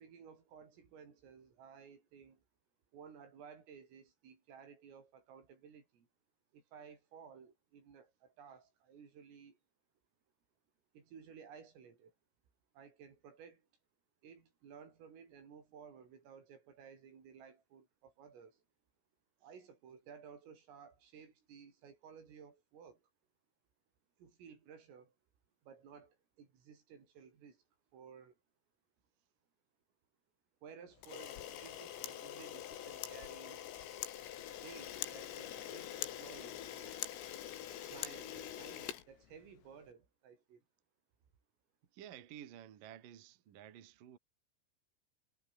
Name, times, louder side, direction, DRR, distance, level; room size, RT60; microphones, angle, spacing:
voice 1, 0.0-2.4 2.9-6.1 6.5-9.6 10.9-12.1 12.7-13.7 14.2-18.6 19.4-23.0 24.2-25.1 25.6-27.6 27.9-28.4 30.6-33.7 34.5-37.0 37.9-40.6, right 6 dB, 80° right, 7.9 m, -56 dB
Camera, 31.0-39.7, left 11 dB, 85° left, 5.2 m, -44 dB
voice 2, 41.9-44.2, right 10 dB, 50° right, 3.3 m, -52 dB
omnidirectional pair, 5.8 m